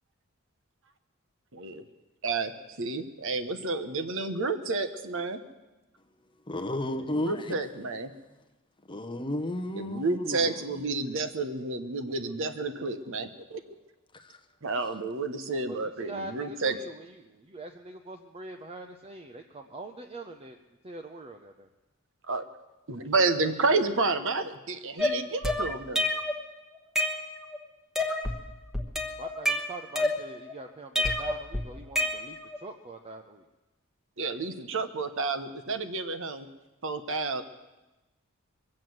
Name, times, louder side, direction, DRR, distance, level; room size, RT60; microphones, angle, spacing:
voice 1, 1.5-1.8 2.2-5.4 7.2-8.1 9.7-13.7 14.6-16.8 22.3-22.4 22.9-26.1 34.2-36.5 36.8-37.4, right 3 dB, 65° right, 9 dB, 1.0 m, -30 dB
voice 2, 6.3-7.5 8.9-10.6 14.1-14.4, left 1 dB, 25° left, 6 dB, 0.9 m, -33 dB
voice 3, 15.7-20.6 20.8-21.7 29.2-33.5, right 2 dB, 30° right, 5 dB, 0.7 m, -43 dB
sound 1, 25.0-26.4 26.7-27.6 27.9-28.4 28.7-30.5 30.9-32.6, left 1 dB, ahead, 1.2 m, -29 dB
22.5 x 7.6 x 7.7 m, 1.1 s
head